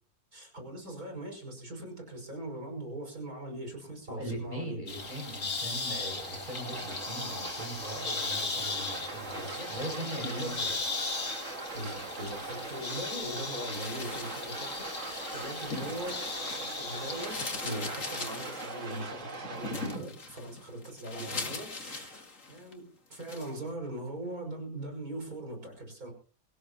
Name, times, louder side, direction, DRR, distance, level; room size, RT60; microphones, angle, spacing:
voice 1, 0.3-4.8 9.3-10.6 11.7-26.1, right 1 dB, 75° right, 2 dB, 6.4 m, -41 dB
voice 2, 4.1-10.8 21.1-21.4, right 1 dB, 30° right, 1 dB, 6.9 m, -40 dB
sound 1, 4.9-17.8, left 4 dB, 75° left, 2.6 m, -38 dB
sound 2, 5.0-20.0, right 3 dB, 55° right, 2.4 m, -41 dB
sound 3, 13.6-16.8 17.1-22.7 23.1-23.5, left 4 dB, 60° left, 2.5 m, -41 dB
24.0 x 16.5 x 2.9 m, 0.38 s
omnidirectional pair, 1.5 m